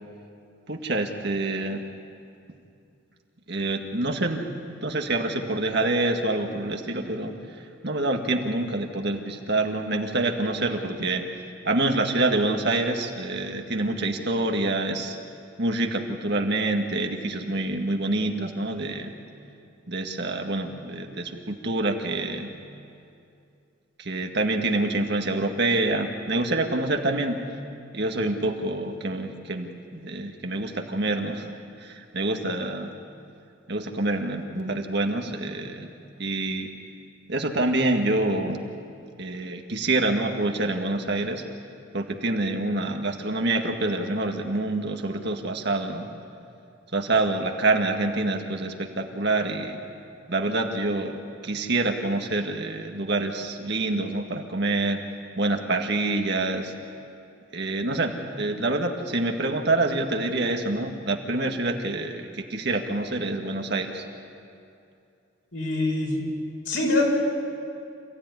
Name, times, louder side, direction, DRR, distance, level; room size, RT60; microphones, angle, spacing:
voice 1, 0.7-1.8 3.5-4.5 4.8-7.3 7.8-11.2 11.7-15.2 15.6-19.1 19.9-22.5 24.0-27.4 27.9-31.5 31.8-32.9 33.7-35.9 36.2-36.7 37.3-38.7 39.2-41.4 41.9-46.1 46.9-49.8 50.3-51.2 51.4-55.0 55.4-56.7 57.5-64.0, right 2 dB, 55° right, 3 dB, 1.9 m, -26 dB
voice 2, 65.5-66.2 66.7-67.0, left 2 dB, 65° left, -1 dB, 6.0 m, -24 dB
27.5 x 16.5 x 9.8 m, 2.5 s
head